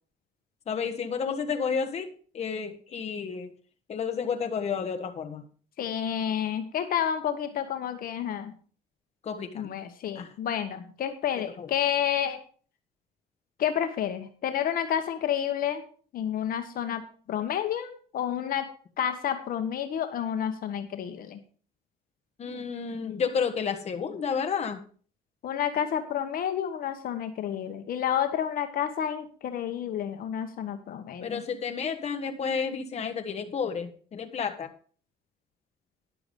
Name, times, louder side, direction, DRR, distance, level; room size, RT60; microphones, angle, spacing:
voice 1, 0.7-3.5 3.9-5.4 9.2-9.7 10.1-10.3 11.6-11.7 22.4-24.8 31.2-34.7, left 6 dB, 40° left, 5 dB, 1.3 m, -31 dB
voice 2, 5.8-8.5 9.5-12.4 13.6-15.8 16.1-17.0 17.3-18.7 19.0-21.4 25.4-31.4, left 9 dB, 60° left, 7 dB, 1.2 m, -30 dB
10.5 x 7.0 x 5.2 m, 0.43 s
cardioid pair, 110°, 17 cm